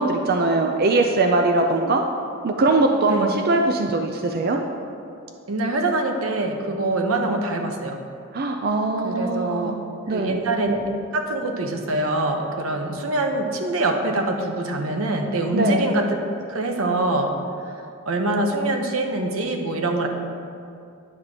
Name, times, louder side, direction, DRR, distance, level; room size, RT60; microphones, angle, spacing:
voice 1, 0.0-2.1 2.4-4.6 8.3-9.8 10.1-10.3 15.5-15.9, right 2 dB, 45° right, 4 dB, 0.4 m, -21 dB
voice 2, 5.5-8.0 9.0-9.7 10.1-10.8 11.1-17.4 18.1-20.1, right 2 dB, 90° right, 3 dB, 0.8 m, -24 dB
9.6 x 3.6 x 6.5 m, 2.5 s
head